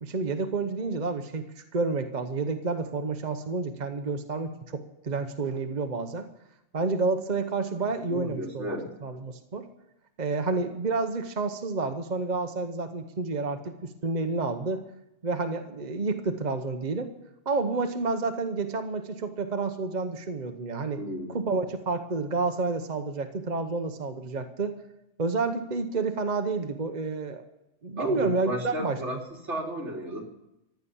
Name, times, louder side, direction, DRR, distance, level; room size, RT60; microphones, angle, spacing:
voice 1, 0.0-6.3 6.7-8.8 9.0-9.7 10.2-14.8 15.2-17.1 17.5-21.0 21.3-24.8 25.2-27.4 27.8-29.2, right 3 dB, 40° right, 7 dB, 1.0 m, -30 dB
voice 2, 8.1-8.8 21.0-21.3 27.9-29.2 29.4-30.2, right 1 dB, 65° right, -1 dB, 3.3 m, -33 dB
15.0 x 11.5 x 7.1 m, 0.89 s
omnidirectional pair, 1.3 m